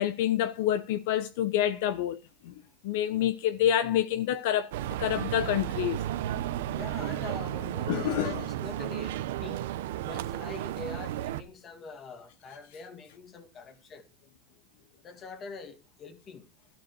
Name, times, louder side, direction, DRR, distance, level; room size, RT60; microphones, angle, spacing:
voice 1, 0.0-2.2 2.4-2.5 2.8-4.7 5.0-6.0 7.9-8.4, left 11 dB, 60° left, 0.9 m, -27 dB
sound 1, 4.7-11.4, right 12 dB, 70° right, 1.0 m, -33 dB
voice 2, 6.7-9.6 10.0-14.1 15.0-16.5, left 4 dB, 25° left, 1.9 m, -44 dB
12.5 x 7.6 x 4.6 m
supercardioid pair, 155°, 0 cm